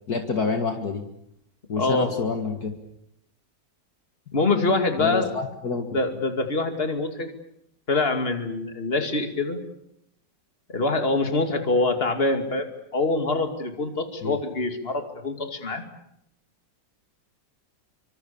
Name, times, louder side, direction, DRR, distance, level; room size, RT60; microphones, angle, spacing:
voice 1, 0.1-1.0 1.7-2.8 5.0-5.9 14.2-14.4, left 4 dB, 55° left, 5 dB, 2.3 m, -27 dB
voice 2, 1.8-2.1 4.3-5.3 5.9-7.3 7.9-9.6 10.7-15.8, left 3 dB, 30° left, 6 dB, 2.7 m, -25 dB
27.0 x 25.0 x 7.1 m, 0.77 s
omnidirectional pair, 2.0 m